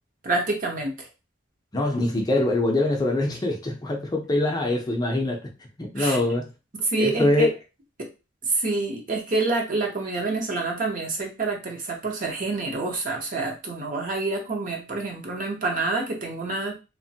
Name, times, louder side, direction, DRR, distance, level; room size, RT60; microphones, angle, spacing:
voice 1, 0.2-1.1 6.0-6.2 6.8-7.5 8.0-8.1 8.4-16.7, right 3 dB, 45° right, 1 dB, 0.7 m, -27 dB
voice 2, 1.7-5.4 5.8-6.5 6.9-7.5, left 2 dB, 20° left, 1 dB, 0.5 m, -23 dB
3.0 x 2.1 x 2.7 m, 0.29 s
head